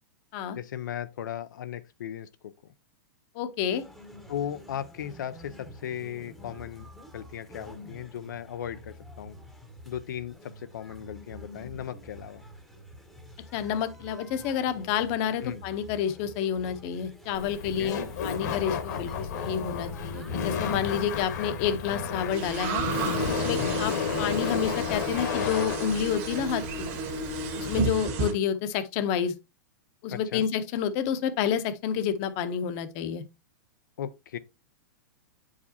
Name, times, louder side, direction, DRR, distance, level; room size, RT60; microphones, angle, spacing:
voice 1, 0.6-2.5 4.3-9.4 9.9-12.4 15.4-15.6 17.7-17.9 23.6-23.8 30.1-30.4 34.0-34.4, left 10 dB, 85° left, 0.5 m, -37 dB
voice 2, 3.3-3.8 13.5-22.8 23.3-26.9 27.5-29.3 30.0-33.2, left 8 dB, 40° left, 0.8 m, -29 dB
sound 1, 3.7-20.7, equal, ahead, 0.9 m, -48 dB
Laughter, 17.3-27.8, left 6 dB, 65° left, 1.3 m, -32 dB
sound 2, 22.3-28.3, right 3 dB, 40° right, 1.5 m, -32 dB
8.2 x 4.9 x 2.8 m
hypercardioid pair, 145°, 10 cm